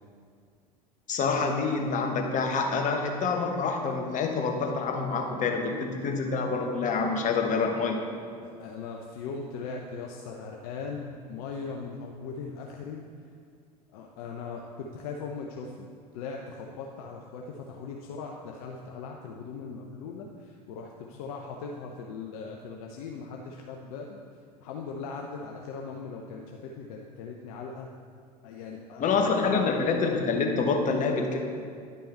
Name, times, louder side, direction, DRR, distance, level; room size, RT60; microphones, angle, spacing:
voice 1, 1.1-8.0 29.0-31.4, left 4 dB, 40° left, 3 dB, 1.3 m, -27 dB
voice 2, 8.4-13.0 13.9-15.9 16.1-24.2 24.6-27.9 28.4-29.0, left 4 dB, 60° left, 1 dB, 0.7 m, -39 dB
10.5 x 5.4 x 4.4 m, 2.2 s
figure-of-eight pair, 75°, 21 cm